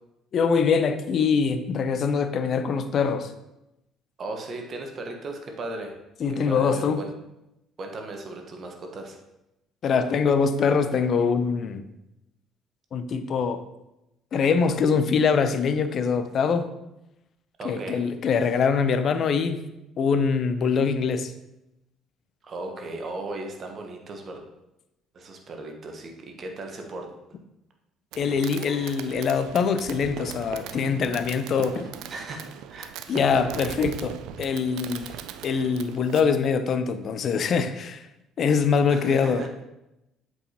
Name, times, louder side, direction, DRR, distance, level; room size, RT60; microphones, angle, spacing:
voice 1, 0.3-3.3 6.2-7.0 9.8-11.8 12.9-13.6 14.3-16.7 17.6-19.6 20.0-21.3 28.2-31.9 33.1-35.1 35.4-38.0 38.4-39.4, left 5 dB, 50° left, 10 dB, 0.5 m, -23 dB
voice 2, 4.2-6.0 6.4-7.1 7.8-9.2 17.6-18.0 22.4-24.4 25.1-27.1 32.1-32.9 33.2-33.4 38.9-39.5, right 2 dB, 45° right, 3 dB, 1.2 m, -36 dB
Fireworks, 28.1-36.2, right 10 dB, 65° right, 0.3 m, -39 dB
7.8 x 4.8 x 2.9 m, 0.90 s
hypercardioid pair, 55°, 0 cm